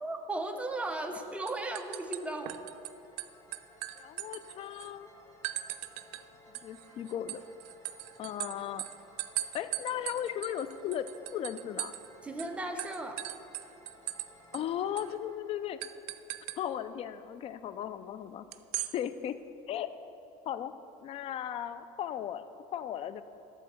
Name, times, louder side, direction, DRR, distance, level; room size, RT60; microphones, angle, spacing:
voice 1, 0.0-2.5 12.2-13.2, right 2 dB, 10° right, 4 dB, 0.7 m, -36 dB
sound 1, 0.9-1.2 1.5-2.9 3.2-4.9 5.4-6.2 6.5-12.1 12.4-12.5 12.8-14.3 14.5-14.6 15.0-15.1 15.8-16.6 18.5-18.9, right 16 dB, 80° right, 0.4 m, -39 dB
sound 2, 2.0-16.8, left 1 dB, 20° left, 1.3 m, -58 dB
voice 2, 4.0-5.1 6.5-7.4 8.2-8.8 9.5-11.9 14.5-15.8 16.6-18.4 18.9-19.4 19.7-19.9 20.5-20.7 21.0-22.4 22.7-23.2, left 10 dB, 40° left, 13 dB, 0.4 m, -36 dB
12.0 x 4.2 x 7.1 m, 2.9 s
supercardioid pair, 115°, 14 cm